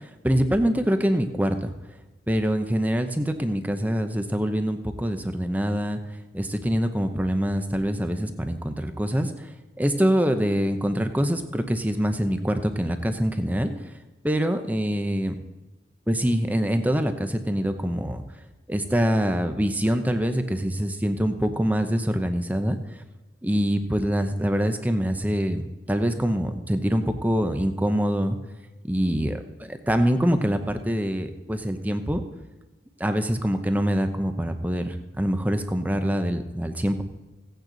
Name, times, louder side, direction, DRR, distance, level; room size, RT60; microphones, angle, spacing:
voice 1, 0.2-1.7 2.3-6.0 6.3-9.3 9.8-13.7 14.2-15.3 16.1-18.2 18.7-22.8 23.4-28.4 28.9-32.2 33.0-37.0, equal, 10° right, 8 dB, 0.7 m, -24 dB
16.0 x 9.1 x 4.0 m, 1.2 s
head